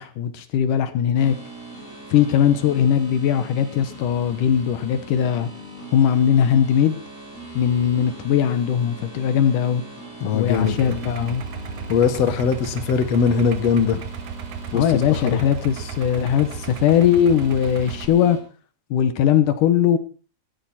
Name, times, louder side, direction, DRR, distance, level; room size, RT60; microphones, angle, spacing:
voice 1, 0.0-1.4 2.1-5.5 5.9-7.0 7.5-9.8 10.3-11.4 14.7-18.4 18.9-20.0, left 9 dB, 80° left, 11 dB, 2.7 m, -19 dB
sound 1, 1.1-18.4, right 1 dB, 20° left, 7.4 m, -40 dB
voice 2, 10.2-11.0 11.9-14.0 14.7-15.4, left 6 dB, 60° left, 10 dB, 2.5 m, -21 dB
Idling, 10.5-18.1, right 6 dB, 65° right, 2.1 m, -34 dB
17.5 x 15.5 x 4.3 m, 0.36 s
omnidirectional pair, 3.6 m